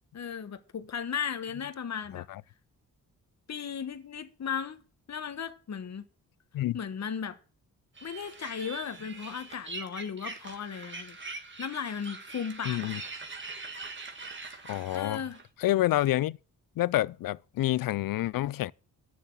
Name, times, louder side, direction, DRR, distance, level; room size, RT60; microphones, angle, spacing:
voice 1, 0.1-2.3 3.5-4.8 5.1-6.0 6.7-7.4 8.0-11.2 11.6-12.9 14.9-15.4, left 7 dB, 50° left, 1.2 m, -36 dB
sound 1, 8.0-15.4, right 3 dB, 35° right, 1.9 m, -42 dB
voice 2, 12.7-13.0 14.7-15.2 15.6-16.4 16.8-18.7, left 15 dB, 75° left, 0.5 m, -28 dB
8.4 x 6.9 x 7.3 m
cardioid pair, 70°, 35 cm